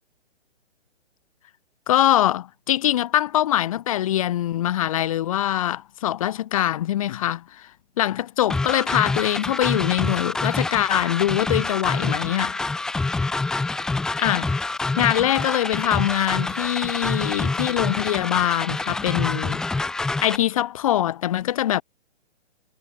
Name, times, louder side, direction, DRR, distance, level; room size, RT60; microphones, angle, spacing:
voice 1, 1.9-7.7 8.0-12.7 14.2-14.6 14.9-19.6 20.2-21.8, left 12 dB, 30° left, 6.3 m, -23 dB
sound 1, 8.5-20.4, left 3 dB, ahead, 1.3 m, -26 dB
hypercardioid pair, 170°, 35 cm